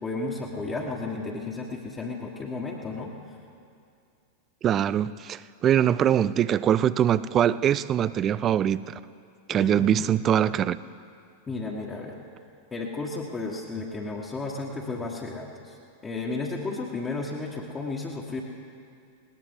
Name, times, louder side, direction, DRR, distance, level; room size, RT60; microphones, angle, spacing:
voice 1, 0.0-3.1 9.5-10.0 11.5-12.2 12.7-15.7 16.0-18.4, left 3 dB, 20° left, -4 dB, 1.6 m, -33 dB
voice 2, 4.6-9.0 9.5-10.8, right 10 dB, 30° right, 18 dB, 0.4 m, -23 dB
20.0 x 19.0 x 3.8 m, 2.4 s
figure-of-eight pair, 90°, 0 cm